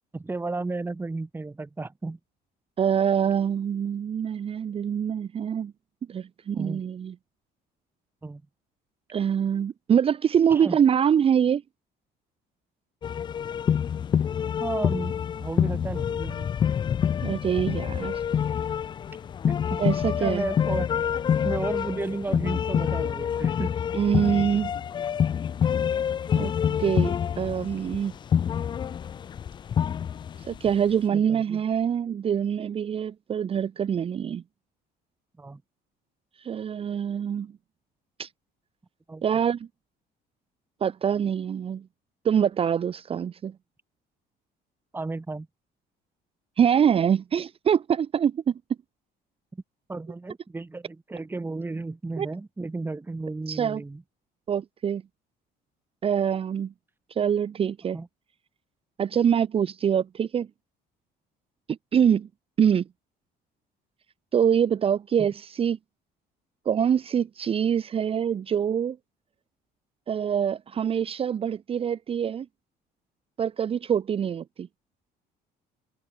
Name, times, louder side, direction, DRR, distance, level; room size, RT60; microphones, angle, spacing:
voice 1, 0.1-2.2 6.5-6.8 8.2-8.4 10.5-10.8 14.6-16.7 19.5-19.8 20.2-20.9 21.4-23.7 26.7-26.8 31.1-31.6 35.4-35.6 39.1-39.3 44.9-45.5 49.5-49.6 49.9-54.0 57.9-58.1, right 3 dB, 10° right, 2.2 m, -33 dB
voice 2, 2.8-5.7 6.1-7.1 9.1-11.6 17.2-18.2 19.8-20.5 23.9-24.7 26.3-26.5 26.8-28.1 30.4-34.4 36.4-37.5 38.2-38.3 39.2-39.7 40.8-41.8 42.2-43.5 46.6-48.5 52.2-52.3 53.5-53.8 54.5-55.0 56.0-56.7 57.1-58.0 59.0-60.5 61.7-62.3 62.6-62.9 64.3-65.8 66.6-69.0 70.1-72.5 73.4-74.7, right 8 dB, 35° right, 1.0 m, -24 dB
sound 1, 13.0-30.8, left 8 dB, 25° left, 0.3 m, -27 dB
cardioid pair, 145°, 17 cm